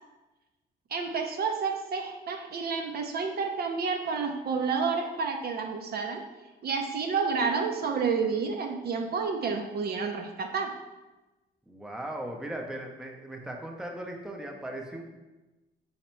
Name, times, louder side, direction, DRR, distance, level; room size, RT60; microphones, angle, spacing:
voice 1, 0.9-6.2 6.6-10.7, right 5 dB, 55° right, 3 dB, 0.6 m, -30 dB
voice 2, 11.7-15.0, right 1 dB, 5° right, 1 dB, 0.6 m, -38 dB
4.2 x 2.8 x 4.4 m, 1.1 s
cardioid pair, 90°, 20 cm